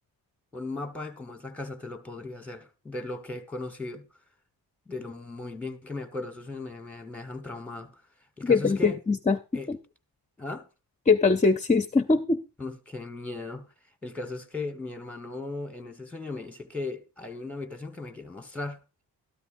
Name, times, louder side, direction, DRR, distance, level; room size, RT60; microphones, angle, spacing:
voice 1, 0.5-4.1 4.9-8.0 8.4-9.0 9.5-9.7 10.4-10.7 12.6-13.7 14.0-18.8, left 2 dB, 5° left, 1.2 m, -37 dB
voice 2, 8.4-9.4 9.7-9.8 11.1-12.4, left 4 dB, 20° left, 0.5 m, -22 dB
13.0 x 12.0 x 2.5 m
wide cardioid pair, 115°, 39 cm